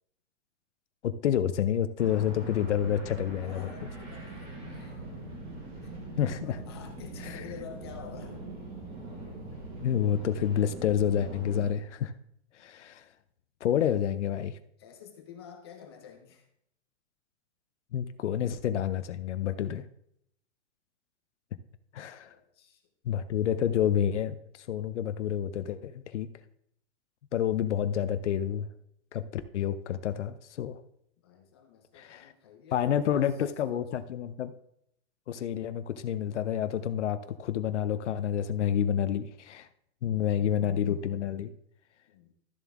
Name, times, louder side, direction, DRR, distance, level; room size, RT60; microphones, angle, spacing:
voice 1, 1.0-3.7 6.2-6.6 7.3-7.4 9.8-12.1 12.5-13.0 13.6-14.6 17.9-19.8 21.9-22.3 23.0-26.3 27.3-28.7 29.1-30.8 31.9-32.3 32.7-34.5 35.3-39.7 40.0-41.5, left 9 dB, 80° left, 12 dB, 0.7 m, -29 dB
sound 1, 2.0-11.7, right 2 dB, 15° right, 1.5 m, -42 dB
voice 2, 3.4-5.1 5.8-5.9 6.4-8.4 14.8-16.5 22.2-22.8 31.2-33.3 33.6-33.8 42.1-42.3, left 7 dB, 20° left, 5 dB, 0.7 m, -49 dB
13.0 x 7.2 x 3.5 m, 0.75 s
hypercardioid pair, 180°, 35 cm